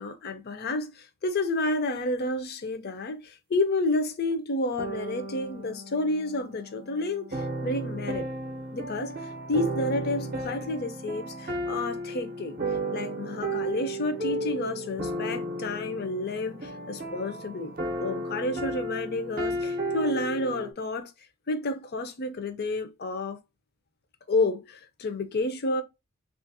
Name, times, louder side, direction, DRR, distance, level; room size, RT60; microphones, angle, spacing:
voice 1, 0.0-8.3 8.7-9.2 9.5-12.6 12.9-17.7 18.0-21.1 21.5-23.4 24.3-25.8, left 2 dB, 50° left, 0.5 m, -30 dB
sound 1, 4.8-20.7, right 1 dB, 45° right, 0.6 m, -34 dB
3.2 x 2.4 x 2.6 m
head